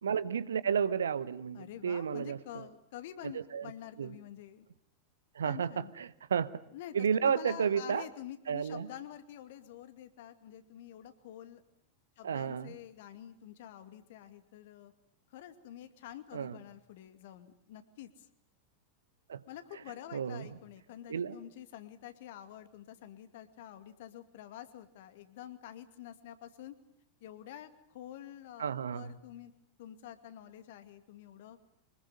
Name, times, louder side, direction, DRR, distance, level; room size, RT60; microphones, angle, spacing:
voice 1, 0.0-2.6 3.2-3.7 4.0-4.1 5.3-6.5 6.9-8.1 8.5-8.9 12.2-12.7 16.3-16.6 19.3-19.4 20.1-20.5 21.1-21.4 28.6-29.1, right 7 dB, 70° right, 16 dB, 1.1 m, -32 dB
voice 2, 1.5-4.7 5.4-5.9 6.7-6.9 7.2-11.6 12.2-14.9 15.3-18.3 19.5-26.8 27.2-29.5 29.8-31.6, left 11 dB, 55° left, 10 dB, 2.3 m, -48 dB
25.0 x 21.0 x 9.8 m, 0.70 s
figure-of-eight pair, 90°, 0 cm